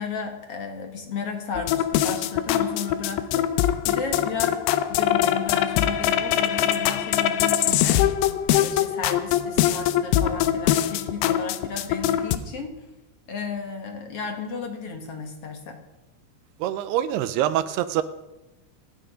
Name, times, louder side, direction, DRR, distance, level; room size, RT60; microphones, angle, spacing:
voice 1, 0.0-3.5 3.8-8.0 8.5-12.7 13.3-15.8, left 5 dB, 55° left, 4 dB, 1.8 m, -33 dB
sound 1, 1.5-12.4, left 11 dB, 80° left, 2.7 m, -23 dB
voice 2, 16.6-18.0, right 12 dB, 80° right, 13 dB, 2.7 m, -25 dB
25.0 x 9.2 x 5.1 m, 1.0 s
omnidirectional pair, 4.7 m